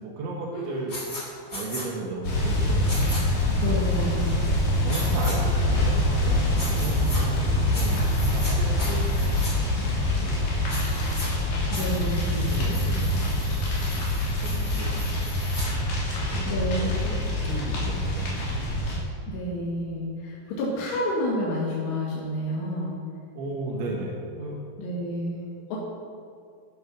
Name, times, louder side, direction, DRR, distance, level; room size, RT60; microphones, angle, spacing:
voice 1, 0.0-3.2 3.5-3.9 4.8-5.9 6.2-8.0 8.3-9.3 10.1-10.5 12.0-12.1 12.4-13.8 14.4-15.4 16.3-18.3 19.5-19.6 23.4-24.6, right 2 dB, 75° right, -1 dB, 3.8 m, -35 dB
sound 1, 0.9-1.2 1.5-1.8 2.9-3.2 4.9-5.3 6.5-7.2 7.7-8.5 8.8-9.5 10.7-11.3 11.7-15.7, left 1 dB, 20° left, 2.1 m, -37 dB
sound 2, 2.2-19.0, left 1 dB, 50° left, 4.2 m, -25 dB
voice 2, 3.6-4.3 11.7-12.8 16.5-16.8 19.3-23.0 24.8-25.8, left 1 dB, 80° left, -5 dB, 4.3 m, -30 dB
11.5 x 10.5 x 6.1 m, 2.2 s
omnidirectional pair, 5.5 m